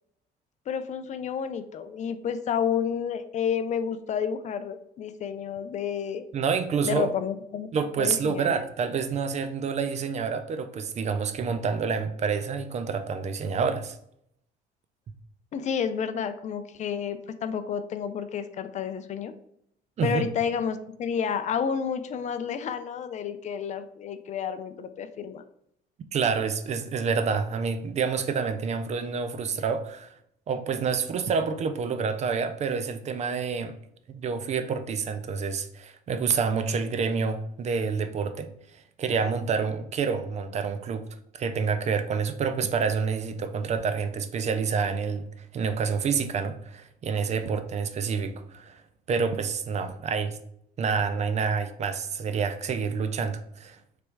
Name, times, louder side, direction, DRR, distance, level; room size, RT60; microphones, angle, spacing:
voice 1, 0.7-6.3 6.8-7.7 8.0-8.6 15.5-19.3 20.0-25.4, left 7 dB, 45° left, 0.4 m, -30 dB
voice 2, 6.3-7.1 7.7-14.0 20.0-20.3 26.1-30.1 30.5-33.8 34.1-38.5 38.7-41.0 41.3-48.8 49.1-50.4 50.8-53.8, right 5 dB, 40° right, 0.5 m, -28 dB
3.4 x 3.1 x 4.5 m
cardioid pair, 110°, 17 cm